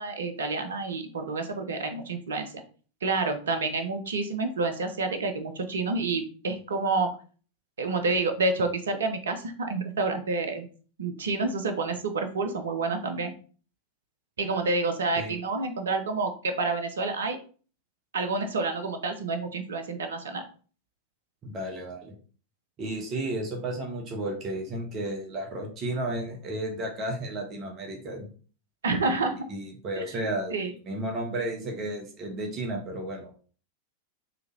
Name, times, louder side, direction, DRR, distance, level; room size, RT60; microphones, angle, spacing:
voice 1, 0.0-2.5 3.0-7.1 7.8-10.7 11.0-13.3 14.4-17.4 18.1-20.5 28.8-29.4 30.0-30.1 30.5-30.7, right 3 dB, 65° right, 7 dB, 0.7 m, -28 dB
voice 2, 21.4-22.1 22.8-28.3 29.5-33.3, right 1 dB, 30° right, 1 dB, 1.1 m, -33 dB
4.0 x 3.3 x 2.8 m, 0.40 s
figure-of-eight pair, 90°, 0 cm